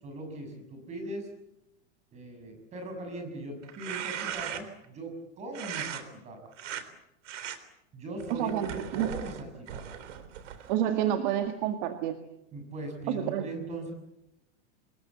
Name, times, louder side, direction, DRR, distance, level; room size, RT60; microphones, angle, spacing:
voice 1, 0.0-1.3 2.1-6.5 7.9-9.9 12.5-13.9, right 1 dB, 20° right, 4 dB, 6.4 m, -40 dB
sound 1, 3.6-4.9 5.5-6.0 6.5-6.8 7.3-7.6 8.2-10.8, right 9 dB, 85° right, 3.8 m, -38 dB
voice 2, 8.3-9.1 10.7-12.2 13.1-13.5, right 11 dB, 40° right, 6 dB, 1.9 m, -29 dB
27.0 x 22.0 x 8.4 m, 0.87 s
supercardioid pair, 175°, 35 cm